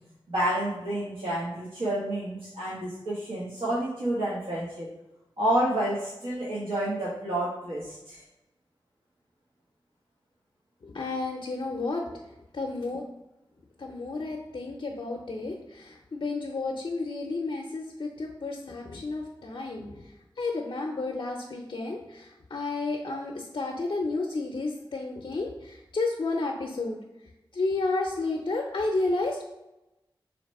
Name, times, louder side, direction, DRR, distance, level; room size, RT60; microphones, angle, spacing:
voice 1, 0.3-4.9 5.4-8.2, right 1 dB, 85° right, -8 dB, 1.0 m, -29 dB
voice 2, 10.8-12.0 12.5-13.0 13.8-27.0 27.5-29.4, left 3 dB, 65° left, 0 dB, 0.5 m, -31 dB
3.2 x 2.9 x 4.1 m, 0.95 s
wide cardioid pair, 65°, 9 cm